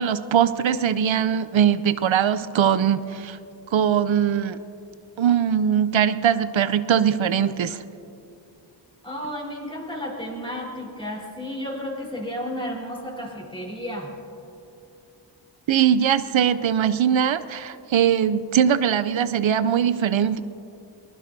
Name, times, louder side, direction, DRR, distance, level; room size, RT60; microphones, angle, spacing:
voice 1, 0.0-3.4 3.7-4.6 5.2-7.8 15.7-20.4, right 8 dB, 85° right, 13 dB, 0.6 m, -21 dB
voice 2, 9.0-14.1, equal, 10° left, -3 dB, 3.8 m, -32 dB
23.5 x 20.0 x 2.7 m, 2.7 s
wide cardioid pair, 60°, 45 cm